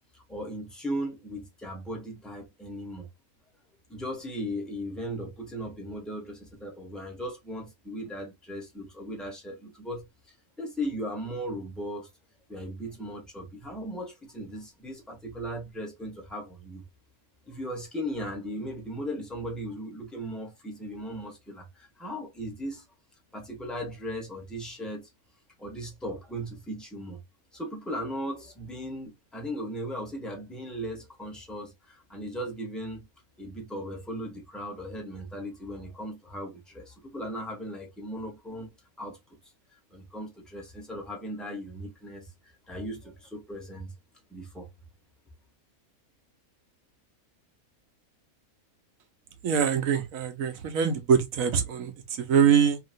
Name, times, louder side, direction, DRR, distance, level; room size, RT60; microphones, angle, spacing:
voice 1, 0.1-3.1 3.9-10.1 10.6-12.1 12.5-16.8 17.5-22.8 23.3-25.1 25.6-27.2 27.5-33.0 33.4-39.2 39.9-42.3 42.7-43.9 44.3-44.7, equal, ahead, 0.8 m, -37 dB
voice 2, 49.4-52.8, right 7 dB, 70° right, 1.1 m, -24 dB
2.9 x 2.7 x 2.6 m
omnidirectional pair, 1.5 m